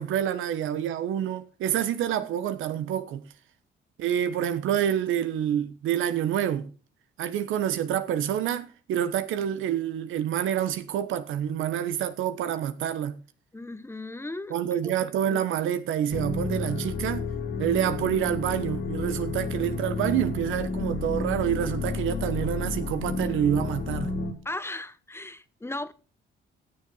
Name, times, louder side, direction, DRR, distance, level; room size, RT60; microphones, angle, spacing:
voice 1, 0.0-3.2 4.0-6.7 7.2-13.2 14.5-17.3 17.6-24.1, right 10 dB, 85° right, 1.2 m, -27 dB
voice 2, 13.5-14.6 14.8-14.9 15.3-15.4 24.4-25.9, left 2 dB, 10° left, 1.0 m, -36 dB
sound 1, 16.1-24.3, left 4 dB, 85° left, 3.5 m, -31 dB
16.5 x 7.0 x 5.6 m
cardioid pair, 90°, 20 cm